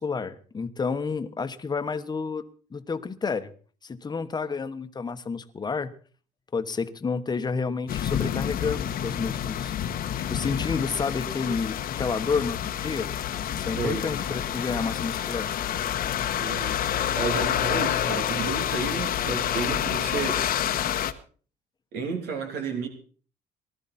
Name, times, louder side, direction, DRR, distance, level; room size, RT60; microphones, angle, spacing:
voice 1, 0.0-2.4 2.7-3.5 3.8-5.9 6.5-9.7 10.3-13.1 13.5-15.5, left 5 dB, 25° left, 10 dB, 1.2 m, -30 dB
sound 1, 7.9-21.1, left 10 dB, 60° left, 1.2 m, -28 dB
voice 2, 16.4-16.8 17.1-20.4 21.9-22.9, right 5 dB, 75° right, 4 dB, 3.1 m, -31 dB
19.5 x 12.5 x 4.3 m, 0.42 s
cardioid pair, 110°, 17 cm